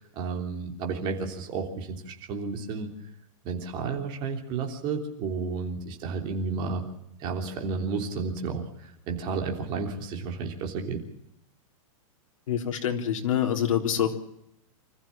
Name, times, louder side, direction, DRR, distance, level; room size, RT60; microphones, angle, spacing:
voice 1, 0.0-2.9 3.4-6.8 7.2-11.0, right 5 dB, 25° right, 3 dB, 3.4 m, -32 dB
voice 2, 12.5-14.2, left 9 dB, 65° left, 3 dB, 3.7 m, -26 dB
25.5 x 14.5 x 7.4 m, 0.79 s
supercardioid pair, 170°, 18 cm